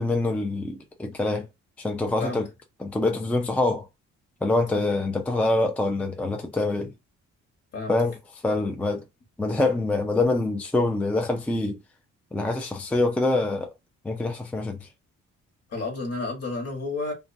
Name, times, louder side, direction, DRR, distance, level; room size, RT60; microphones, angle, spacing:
voice 1, 0.0-1.5 1.8-2.4 2.8-3.9 4.4-6.9 7.9-8.1 8.4-9.0 9.4-11.8 12.3-13.7 14.0-14.9, left 2 dB, 5° left, 0.3 m, -25 dB
voice 2, 15.7-17.1, left 3 dB, 55° left, 1.2 m, -31 dB
2.4 x 2.2 x 2.5 m
cardioid pair, 90°, 30 cm